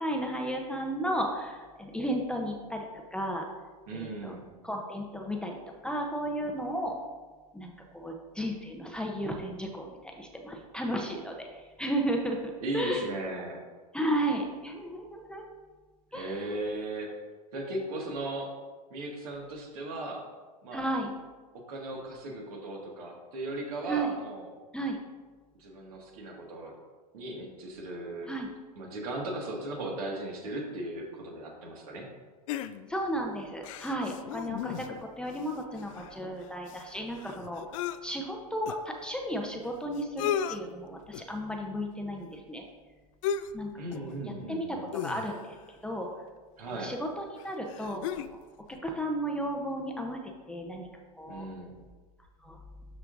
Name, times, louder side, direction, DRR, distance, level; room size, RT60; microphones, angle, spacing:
voice 1, 0.0-3.5 3.9-4.3 4.6-5.6 5.8-7.0 7.5-13.1 13.9-15.4 16.1-16.5 20.7-21.1 23.9-24.1 24.7-25.0 28.3-28.5 32.9-37.6 38.0-42.6 43.5-46.1 46.7-48.4 48.7-50.2 50.5-50.9 51.1-51.5 52.4-52.6, right 1 dB, 5° left, 1 dB, 0.8 m, -34 dB
voice 2, 3.9-4.4 12.6-13.6 16.1-17.1 17.5-18.5 18.9-20.2 20.6-20.8 21.5-24.5 25.6-26.7 27.1-28.3 28.8-32.1 43.8-44.8 46.6-46.9 51.3-51.7, right 1 dB, 65° right, 0 dB, 1.9 m, -37 dB
sound 1, 32.5-33.1 33.6-35.1 35.4-35.5 35.7-38.0 38.7-38.8 39.6-39.7 40.0-40.6 41.1-41.4 43.2-43.6 43.9-44.1 44.9-45.6 46.7-46.8 47.4-48.4 48.7-48.8, left 9 dB, 55° left, 0.4 m, -35 dB
12.5 x 4.4 x 2.6 m, 1.3 s
hypercardioid pair, 95°, 20 cm